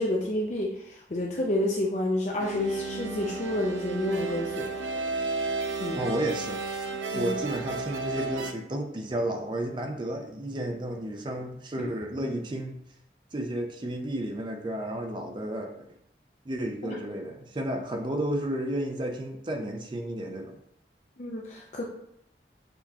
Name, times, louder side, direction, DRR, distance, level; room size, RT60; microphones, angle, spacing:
voice 1, 0.0-4.7 5.8-6.1 7.1-7.4 11.8-11.9 16.8-17.0 21.2-21.8, left 1 dB, 40° left, -1 dB, 0.5 m, -29 dB
sound 1, 2.4-8.5, right 3 dB, 90° right, 0.5 m, -33 dB
voice 2, 5.9-6.6 7.1-12.8 13.3-15.9 16.5-20.6, right 1 dB, 25° right, 4 dB, 0.4 m, -32 dB
6.7 x 2.8 x 2.3 m, 0.76 s
head